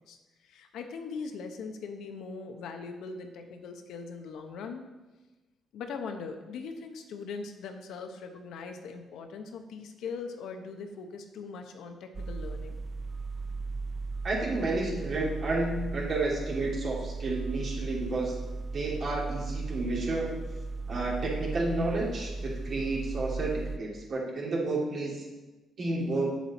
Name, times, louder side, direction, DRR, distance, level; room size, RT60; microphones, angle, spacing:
voice 1, 0.0-4.9 5.7-12.8, left 5 dB, 80° left, 6 dB, 0.8 m, -40 dB
sound 1, 12.1-23.8, right 3 dB, 35° right, 0.3 m, -36 dB
voice 2, 14.2-18.4 18.7-20.4 20.9-25.3 25.8-26.3, right 2 dB, 55° right, -3 dB, 2.5 m, -31 dB
7.4 x 7.3 x 4.2 m, 1.2 s
cardioid pair, 90°, 0 cm